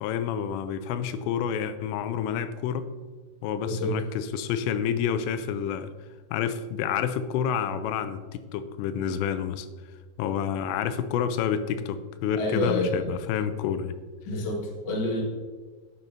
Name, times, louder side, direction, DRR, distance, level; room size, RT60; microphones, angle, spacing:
voice 1, 0.0-2.9 3.4-5.9 6.3-9.7 10.2-14.0, left 8 dB, 85° left, 11 dB, 2.8 m, -29 dB
voice 2, 3.6-4.0 12.3-13.1 14.3-15.2, left 1 dB, 65° left, -2 dB, 1.1 m, -28 dB
10.5 x 7.5 x 2.6 m, 1.4 s
omnidirectional pair, 5.0 m